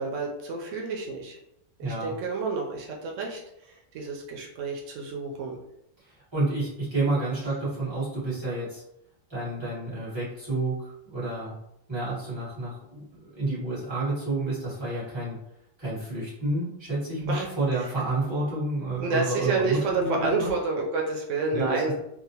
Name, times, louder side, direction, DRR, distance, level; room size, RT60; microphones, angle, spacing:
voice 1, 0.0-1.4 1.8-3.4 3.6-5.6 17.3-17.5 19.0-21.9, right 3 dB, 85° right, 0 dB, 0.9 m, -29 dB
voice 2, 1.8-2.1 6.0-8.8 9.3-11.5 11.9-15.4 15.8-20.5 21.5-21.9, right 2 dB, 25° right, -9 dB, 1.3 m, -30 dB
2.8 x 2.0 x 2.7 m, 0.79 s
omnidirectional pair, 1.2 m